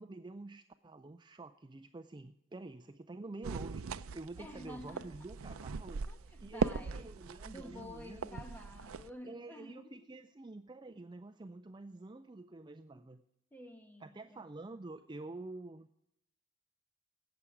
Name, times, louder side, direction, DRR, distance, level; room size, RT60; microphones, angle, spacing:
voice 1, 0.0-6.0 6.4-8.4 9.2-13.2 14.0-16.0, right 2 dB, 20° right, 0.4 m, -48 dB
sound 1, 3.4-9.1, right 5 dB, 90° right, 0.5 m, -40 dB
voice 2, 4.4-5.2 5.5-10.1 12.9-13.1 13.5-14.4, left 1 dB, 10° left, 1.2 m, -51 dB
17.5 x 7.1 x 4.8 m
head